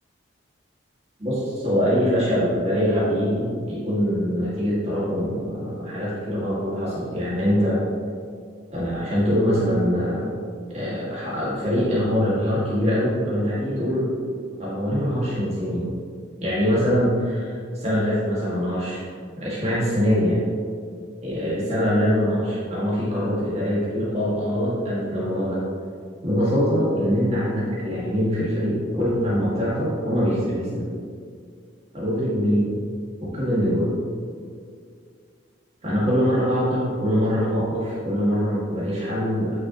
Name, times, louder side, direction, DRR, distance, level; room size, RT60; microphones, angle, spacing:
voice 1, 1.2-7.8 8.7-10.3 10.7-14.1 14.6-15.9 16.4-19.0 19.4-20.4 21.2-25.6 26.2-30.9 31.9-32.7 33.2-33.8 35.8-39.6, equal, 35° right, -8 dB, 1.9 m, -23 dB
8.9 x 5.9 x 3.0 m, 2.1 s
head